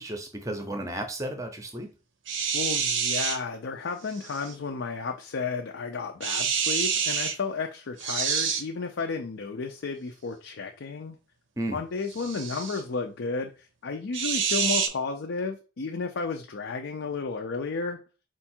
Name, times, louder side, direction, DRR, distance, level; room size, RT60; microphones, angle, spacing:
voice 1, 0.0-1.9 11.6-11.8, right 1 dB, 15° right, 6 dB, 0.6 m, -33 dB
sound 1, 2.3-3.4 4.2-4.5 6.2-7.4 8.0-8.6 12.1-12.8 14.1-14.9, right 6 dB, 60° right, 0.6 m, -27 dB
voice 2, 2.5-11.2 11.7-18.0, left 4 dB, 55° left, 3 dB, 0.5 m, -32 dB
4.5 x 2.3 x 4.3 m, 0.33 s
head